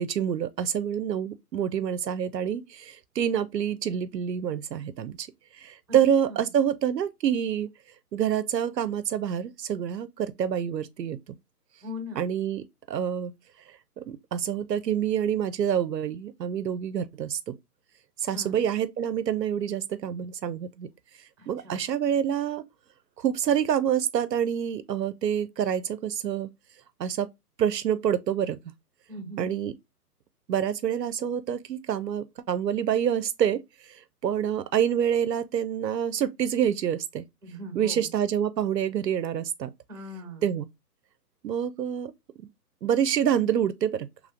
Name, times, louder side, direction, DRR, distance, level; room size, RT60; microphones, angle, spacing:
voice 1, 0.0-5.3 5.6-7.7 8.1-11.2 12.2-13.3 14.0-17.5 18.2-20.9 21.5-22.7 23.2-26.5 27.0-27.3 27.6-28.6 29.4-29.7 30.5-33.6 34.2-37.2 37.7-39.7 40.4-40.7 41.4-42.1 42.8-44.1, right 9 dB, 85° right, 0.6 m, -27 dB
voice 2, 11.8-12.3 18.3-18.5 21.4-21.8 29.1-29.5 37.4-38.1 39.9-40.5, left 1 dB, 5° right, 1.1 m, -40 dB
3.6 x 3.1 x 2.4 m
figure-of-eight pair, 130°, 48 cm